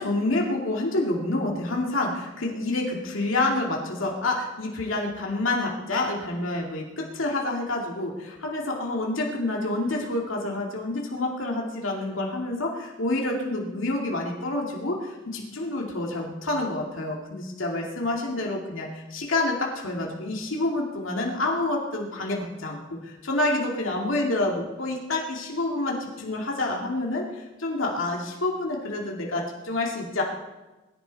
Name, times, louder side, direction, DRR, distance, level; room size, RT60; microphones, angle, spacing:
voice 1, 0.0-30.2, left 2 dB, 85° left, -1 dB, 2.5 m, -28 dB
22.0 x 11.0 x 4.2 m, 1.1 s
head